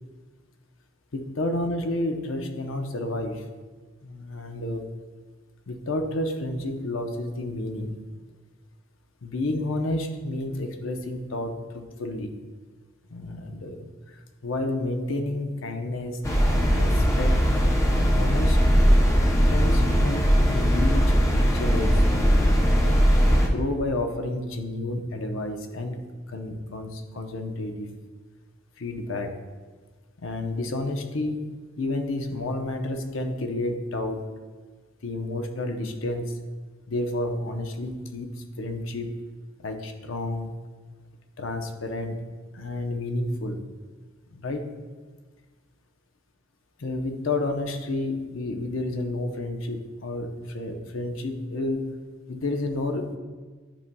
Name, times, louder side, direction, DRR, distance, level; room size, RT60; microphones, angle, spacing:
voice 1, 1.1-3.4 4.0-4.9 5.7-8.0 9.2-12.3 13.1-17.3 18.1-18.6 19.5-22.0 22.4-23.0 23.5-27.9 28.8-29.3 30.2-31.4 31.8-34.2 35.0-36.4 36.9-39.2 39.6-40.5 41.4-42.2 42.5-43.6 44.3-44.7 46.8-51.9 52.3-53.2, left 2 dB, 80° left, 5 dB, 0.7 m, -30 dB
sound 1, 16.2-23.5, equal, 15° left, 0.6 m, -20 dB
10.0 x 5.4 x 2.2 m, 1.4 s
head